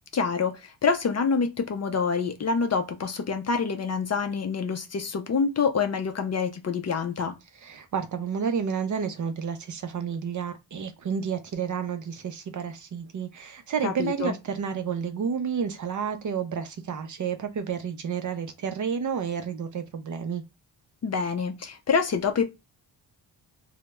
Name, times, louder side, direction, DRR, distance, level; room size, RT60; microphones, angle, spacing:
voice 1, 0.1-7.3 13.8-14.3 21.0-22.4, left 5 dB, 40° left, 0.4 m, -26 dB
voice 2, 7.6-20.4, right 7 dB, 45° right, 0.4 m, -30 dB
2.2 x 2.0 x 2.8 m
wide cardioid pair, 120°, 43 cm